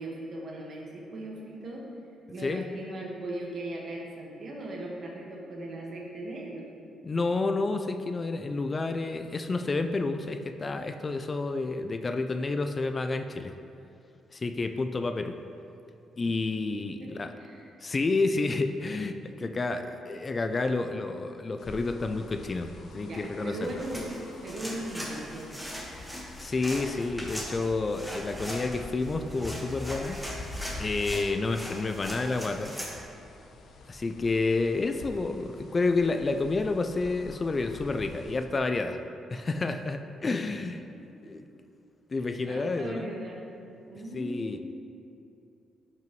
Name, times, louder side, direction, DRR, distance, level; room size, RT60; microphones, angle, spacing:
voice 1, 0.0-1.9 2.3-6.6 16.2-16.3 17.0-17.7 19.4-19.5 23.1-25.5 40.4-40.6 41.0-41.3 42.4-43.4 43.9-44.6, right 1 dB, 55° right, -2 dB, 1.5 m, -38 dB
voice 2, 7.0-13.6 14.3-15.4 16.2-17.3 17.8-23.7 26.4-30.3 30.8-32.8 33.9-39.0 39.3-40.8 41.2-41.5 42.1-43.1 44.1-44.6, left 3 dB, 30° left, 7 dB, 0.4 m, -30 dB
sound 1, 21.6-38.5, left 2 dB, 60° left, 0.7 m, -46 dB
sound 2, 23.6-32.9, equal, ahead, 1.4 m, -40 dB
10.5 x 5.5 x 3.1 m, 2.6 s
cardioid pair, 90°, 0 cm